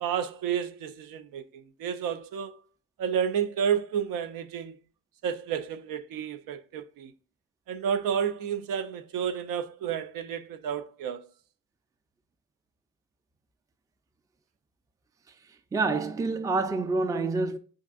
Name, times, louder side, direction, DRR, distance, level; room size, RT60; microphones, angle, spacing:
voice 1, 0.0-2.6 3.0-4.8 5.2-7.1 7.7-11.2, right 8 dB, 75° right, 0.5 m, -31 dB
voice 2, 15.7-17.6, right 3 dB, 10° right, 0.3 m, -27 dB
5.3 x 2.5 x 2.4 m
cardioid pair, 65°, 34 cm